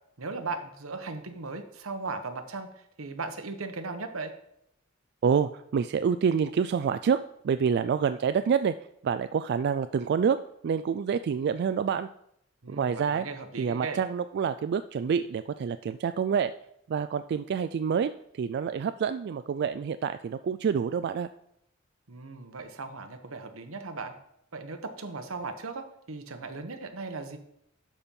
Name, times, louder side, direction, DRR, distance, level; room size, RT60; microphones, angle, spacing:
voice 1, 0.2-4.3 12.6-14.0 22.1-24.1 24.5-27.4, right 3 dB, 85° right, 7 dB, 1.1 m, -37 dB
voice 2, 5.2-8.7 9.0-12.1 12.7-13.2 13.6-16.5 16.9-18.1 18.4-21.3, right 6 dB, 55° right, 11 dB, 0.3 m, -27 dB
12.0 x 4.4 x 5.4 m, 0.75 s
head